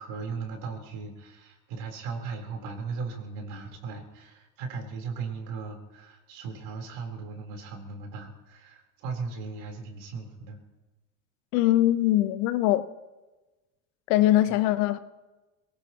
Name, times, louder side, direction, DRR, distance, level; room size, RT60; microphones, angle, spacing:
voice 1, 0.0-10.6, right 4 dB, 75° right, 3.9 m, -37 dB
voice 2, 11.5-12.8 14.1-15.0, left 14 dB, 80° left, 1.0 m, -22 dB
23.0 x 18.5 x 3.0 m
supercardioid pair, 100°, 38 cm